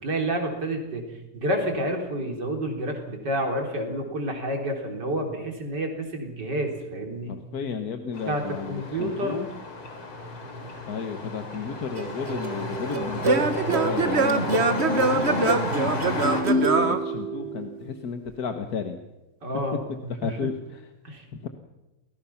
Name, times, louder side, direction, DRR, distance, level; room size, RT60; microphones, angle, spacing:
voice 1, 0.0-1.0 1.3-7.4 8.3-9.4 19.4-20.4 21.0-21.2, right 1 dB, 50° right, 2 dB, 4.3 m, -29 dB
voice 2, 7.3-9.5 10.9-19.0 20.2-20.9 21.4-21.5, left 6 dB, 50° left, 6 dB, 1.6 m, -34 dB
sound 1, 8.1-16.4, left 2 dB, 70° left, 4.3 m, -33 dB
Singing / Plucked string instrument, 12.0-17.8, right 3 dB, 35° right, 1.6 m, -24 dB
29.5 x 21.0 x 5.9 m, 1.0 s
omnidirectional pair, 2.4 m